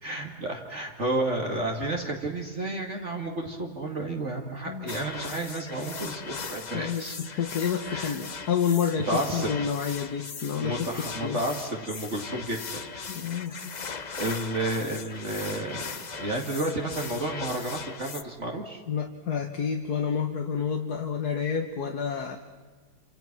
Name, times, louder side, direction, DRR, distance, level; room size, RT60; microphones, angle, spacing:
voice 1, 0.0-7.2 7.8-8.2 9.1-9.5 10.6-13.0 13.5-18.8, right 2 dB, 45° right, 1 dB, 2.5 m, -31 dB
sound 1, 4.9-18.2, left 5 dB, 35° left, 0.8 m, -39 dB
voice 2, 6.7-7.0 7.3-11.4 13.1-13.7 18.9-22.4, left 7 dB, 70° left, 3 dB, 1.9 m, -29 dB
28.5 x 26.5 x 6.1 m, 1.4 s
omnidirectional pair, 1.8 m